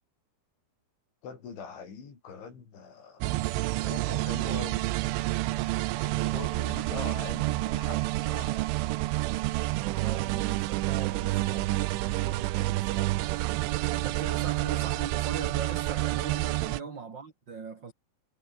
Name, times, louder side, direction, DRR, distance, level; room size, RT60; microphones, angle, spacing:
voice 1, 1.2-3.2 3.7-4.9 5.2-5.4 6.0-9.0 16.6-16.9, left 6 dB, 75° left, 8.2 m, -43 dB
sound 1, 3.2-16.8, right 18 dB, 85° right, 3.4 m, -29 dB
voice 2, 9.7-13.5 13.9-17.9, right 5 dB, 30° right, 2.5 m, -41 dB
omnidirectional pair, 5.4 m